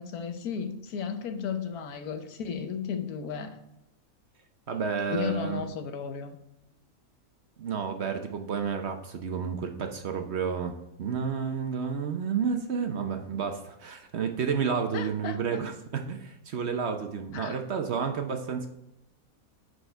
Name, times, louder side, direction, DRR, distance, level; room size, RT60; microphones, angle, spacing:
voice 1, 0.0-3.6 5.1-6.4 14.9-15.6 17.3-17.6, left 7 dB, 85° left, 8 dB, 1.3 m, -34 dB
voice 2, 4.7-5.6 7.6-18.7, right 6 dB, 55° right, 5 dB, 0.9 m, -31 dB
6.6 x 4.8 x 4.5 m, 0.85 s
omnidirectional pair, 1.6 m